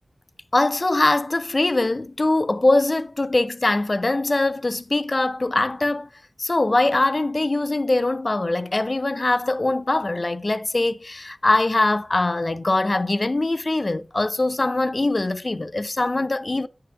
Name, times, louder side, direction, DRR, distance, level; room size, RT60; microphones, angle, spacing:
voice 1, 0.5-6.1 6.4-16.7, left 2 dB, 45° left, 0.6 m, -22 dB
9.9 x 5.8 x 3.5 m
wide cardioid pair, 50°, 0 cm